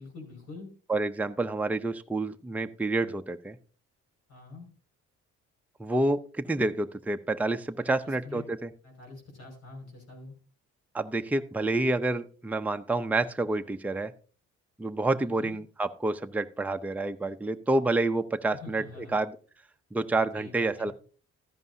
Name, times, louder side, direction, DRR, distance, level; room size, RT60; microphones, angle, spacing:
voice 1, 0.0-0.7 4.3-4.7 7.8-8.4 8.8-10.3 15.2-15.6 18.5-19.2 20.3-20.9, left 3 dB, 55° left, 0 dB, 5.5 m, -45 dB
voice 2, 0.9-3.6 5.8-8.7 10.9-14.1 14.8-19.3 19.9-20.9, right 2 dB, 5° right, 7 dB, 0.6 m, -28 dB
14.0 x 11.0 x 2.7 m, 0.39 s
cardioid pair, 90°, 30 cm